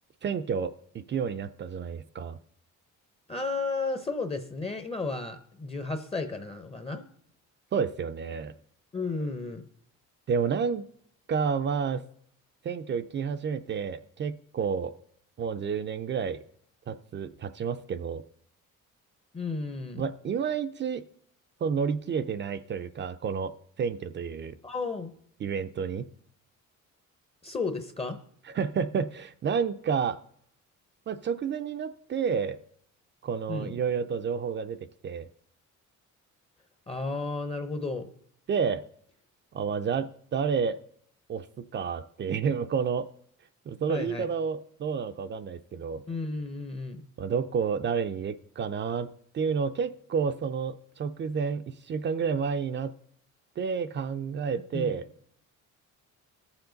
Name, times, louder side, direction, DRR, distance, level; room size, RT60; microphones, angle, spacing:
voice 1, 0.2-2.4 7.7-8.5 10.3-10.8 11.3-12.0 12.6-14.9 15.4-16.4 16.9-18.2 20.0-21.0 21.6-23.5 23.8-24.5 25.4-26.1 28.5-30.2 31.1-32.6 33.2-34.8 35.0-35.3 38.5-38.8 39.5-40.8 41.3-43.1 43.7-46.0 47.2-49.1 49.3-52.9 53.6-55.1, right 6 dB, 35° right, 11 dB, 0.5 m, -30 dB
voice 2, 3.3-7.0 8.9-9.6 19.3-20.1 24.6-25.2 27.4-28.2 33.5-33.7 36.9-38.1 43.9-44.3 46.1-47.0 54.7-55.0, left 3 dB, 20° left, 8 dB, 0.7 m, -33 dB
20.0 x 7.1 x 3.9 m, 0.66 s
cardioid pair, 145°, 31 cm